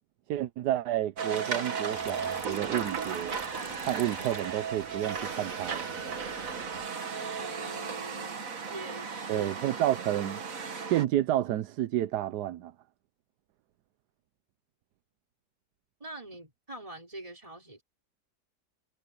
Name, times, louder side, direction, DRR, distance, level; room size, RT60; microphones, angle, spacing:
voice 1, 0.3-3.4 3.8-5.9 9.3-10.4 10.9-12.7, right 12 dB, 80° right, 1.3 m, -30 dB
sound 1, 1.2-11.1, right 6 dB, 55° right, 1.9 m, -35 dB
Water tap faucet / Trickle dribble, 1.9-6.9, left 1 dB, 15° left, 3.7 m, -49 dB
voice 2, 7.4-8.4 8.7-9.5 16.0-17.8, right 1 dB, 20° right, 5.0 m, -43 dB
omnidirectional pair, 1.8 m